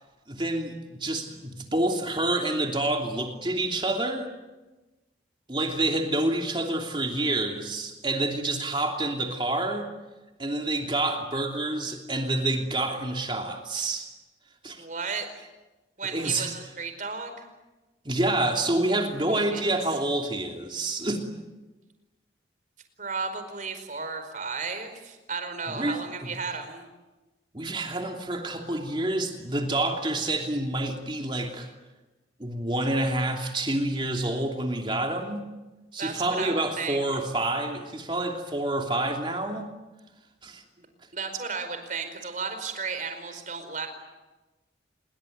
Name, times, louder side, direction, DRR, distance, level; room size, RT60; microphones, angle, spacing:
voice 1, 0.3-4.3 5.5-9.9 10.4-14.1 14.6-14.8 16.1-16.5 18.0-21.2 25.7-26.3 27.5-31.7 32.4-35.5 35.9-39.7 40.4-40.6, right 2 dB, 25° right, 3 dB, 3.0 m, -28 dB
voice 2, 14.8-15.4 16.0-17.5 19.3-19.6 23.0-26.9 36.0-37.1 40.8-40.9 41.1-43.9, right 5 dB, 45° right, 8 dB, 4.8 m, -34 dB
27.0 x 22.5 x 9.5 m, 1.1 s
head